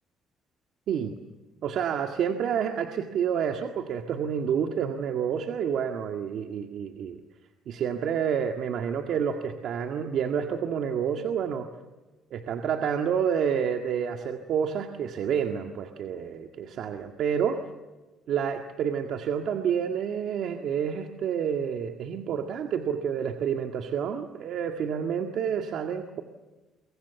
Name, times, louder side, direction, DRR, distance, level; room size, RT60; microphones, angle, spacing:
voice 1, 1.6-7.2 7.7-11.7 12.3-17.6 18.3-26.2, right 7 dB, 65° right, 4 dB, 1.9 m, -29 dB
28.5 x 24.0 x 7.1 m, 1.2 s
cardioid pair, 115°, 0 cm